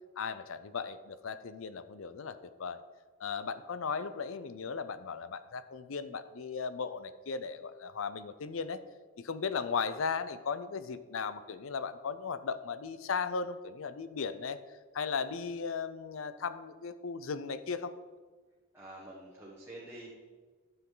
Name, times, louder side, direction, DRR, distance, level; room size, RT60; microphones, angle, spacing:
voice 1, 0.2-2.8 3.2-8.8 9.2-14.6 14.9-17.9, left 5 dB, 75° left, 13 dB, 0.5 m, -36 dB
voice 2, 18.7-20.1, right 1 dB, 10° right, -5 dB, 1.2 m, -47 dB
11.5 x 7.0 x 3.9 m, 1.4 s
head